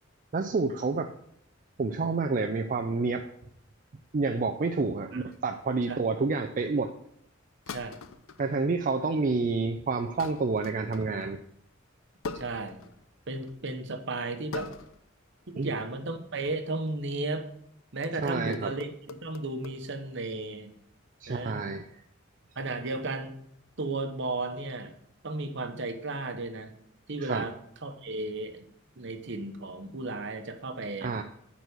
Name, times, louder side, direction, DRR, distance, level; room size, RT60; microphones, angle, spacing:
voice 1, 0.3-1.1 1.8-3.3 4.1-6.9 8.4-11.4 15.6-15.7 18.2-18.7 21.2-21.8 27.2-27.4 31.0-31.2, right 4 dB, 40° right, 5 dB, 0.4 m, -29 dB
sound 1, 5.3-5.7 7.7-8.5 9.0-9.4 10.2-11.3 12.2-13.1 13.4-13.6 14.5-15.1 15.4-15.7 17.3-17.6 18.0-19.8, left 4 dB, 80° left, 0.6 m, -42 dB
voice 2, 12.3-12.8 13.3-14.7 15.5-17.4 17.9-18.9 19.2-20.7 21.3-21.6 22.5-23.3 23.8-25.0 25.2-26.7 27.1-27.6 27.8-28.6 29.0-31.1, right 2 dB, 65° right, 7 dB, 1.0 m, -34 dB
9.1 x 4.1 x 6.4 m, 0.71 s
head